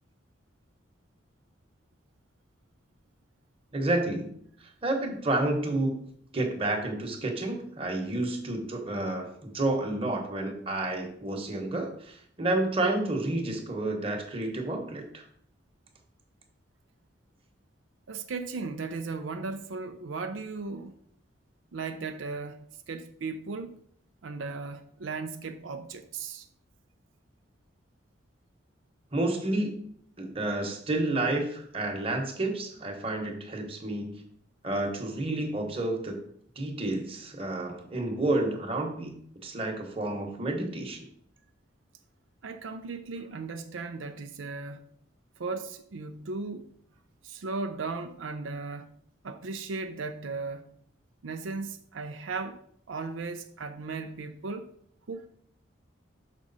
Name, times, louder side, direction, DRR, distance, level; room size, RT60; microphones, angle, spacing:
voice 1, 3.7-4.3 4.8-5.9 6.3-15.2 29.1-29.8 30.2-34.1 34.6-36.2 36.6-39.1 39.4-41.0, right 2 dB, 30° right, 1.1 m, -30 dB
voice 2, 18.1-20.9 21.7-23.8 24.2-26.5 42.4-44.8 45.4-46.7 47.2-49.0 49.2-50.6 51.2-52.6 52.9-54.7 55.1-55.3, right 4 dB, 85° right, 0.5 m, -36 dB
6.3 x 4.8 x 4.1 m
head